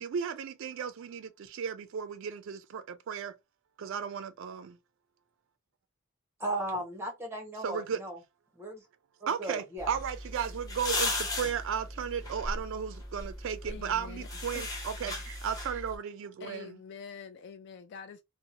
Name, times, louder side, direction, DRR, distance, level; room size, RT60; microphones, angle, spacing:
voice 1, 0.0-3.4 3.8-4.8 7.6-8.0 9.3-16.8, right 7 dB, 65° right, 0.3 m, -35 dB
voice 2, 6.4-8.2 8.6-8.8 9.4-9.9, right 1 dB, 10° right, 0.9 m, -36 dB
sound 1, 9.8-16.0, left 2 dB, 15° left, 0.7 m, -37 dB
voice 3, 13.7-14.8 16.4-18.2, left 6 dB, 55° left, 0.3 m, -46 dB
2.6 x 2.0 x 2.8 m
head